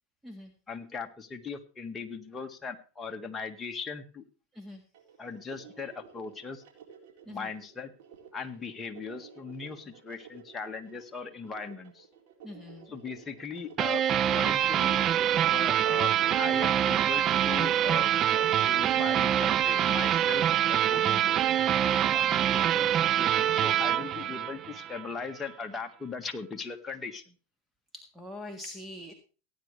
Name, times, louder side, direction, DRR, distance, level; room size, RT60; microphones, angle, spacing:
voice 1, 0.7-4.2 5.2-6.6 7.3-7.9 8.3-12.1 12.9-21.4 22.1-27.4, left 5 dB, 15° left, 4 dB, 1.7 m, -39 dB
sound 1, 4.9-18.6, right 7 dB, 65° right, 4.2 m, -53 dB
voice 2, 12.4-12.9 21.0-21.3 27.9-29.1, left 1 dB, 5° right, 4 dB, 1.7 m, -43 dB
sound 2, 13.8-25.0, right 10 dB, 35° right, 0.5 m, -25 dB
17.0 x 9.5 x 3.3 m, 0.35 s
hypercardioid pair, 105°, 0 cm